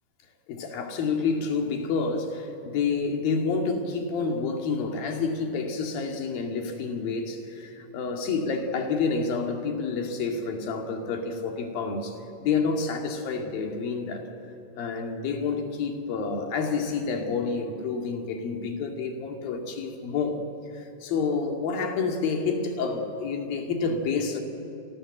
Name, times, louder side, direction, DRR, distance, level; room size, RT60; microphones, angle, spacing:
voice 1, 0.5-14.3 14.7-20.4 20.7-24.4, left 4 dB, 85° left, 3 dB, 4.1 m, -29 dB
30.0 x 25.0 x 7.9 m, 2.8 s
omnidirectional pair, 4.0 m